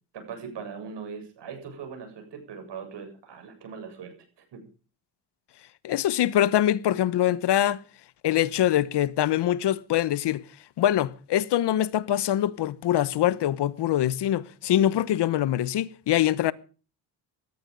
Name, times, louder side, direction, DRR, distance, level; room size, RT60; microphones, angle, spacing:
voice 1, 0.1-4.6, right 6 dB, 70° right, 7.9 m, -40 dB
voice 2, 5.8-7.8 8.2-10.4 10.8-16.5, left 12 dB, 70° left, 1.1 m, -24 dB
18.0 x 14.0 x 5.2 m
cardioid pair, 75°, 43 cm